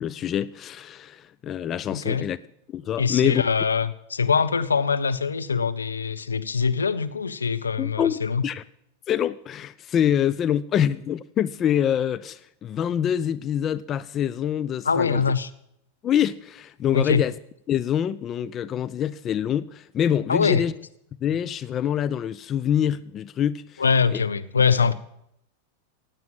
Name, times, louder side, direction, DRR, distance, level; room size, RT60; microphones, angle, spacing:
voice 1, 0.0-2.4 2.7-3.4 7.8-8.2 8.4-8.6 9.1-15.2 16.0-17.3 17.7-20.7 21.2-23.8 24.1-24.2 24.8-24.9, left 9 dB, 30° left, 0.4 m, -25 dB
voice 2, 1.9-2.3 3.0-8.4 14.8-15.5 16.9-17.2 20.3-20.6 23.8-24.9, left 5 dB, 75° left, 0.8 m, -23 dB
16.5 x 9.3 x 7.6 m
figure-of-eight pair, 90°, 0 cm